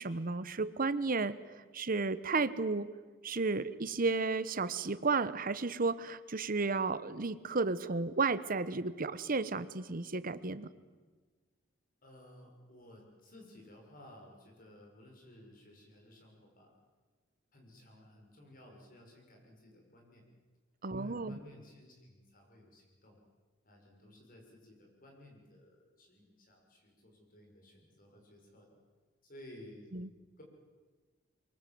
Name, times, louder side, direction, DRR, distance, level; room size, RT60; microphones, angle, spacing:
voice 1, 0.0-1.4 1.7-2.9 3.2-10.7 20.8-21.4 29.9-30.1, right 3 dB, 45° right, 15 dB, 1.0 m, -33 dB
voice 2, 12.0-16.7 17.5-20.2 20.9-23.2 23.6-28.8 29.2-29.9 30.4-30.5, left 1 dB, 45° left, 1 dB, 6.5 m, -56 dB
23.5 x 23.5 x 7.8 m, 1.3 s
head